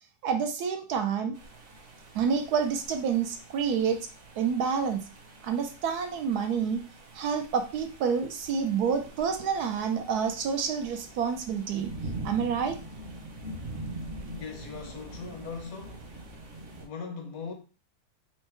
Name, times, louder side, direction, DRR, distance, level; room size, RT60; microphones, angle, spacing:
voice 1, 0.2-1.4 2.1-4.1 4.4-5.0 5.4-6.8 7.1-11.9 12.2-12.8, right 6 dB, 75° right, 1.1 m, -28 dB
sound 1, 1.3-16.8, right 1 dB, 40° right, 0.9 m, -44 dB
voice 2, 14.3-16.1 16.8-17.5, left 5 dB, 65° left, 1.0 m, -39 dB
4.5 x 2.1 x 4.4 m
omnidirectional pair, 1.8 m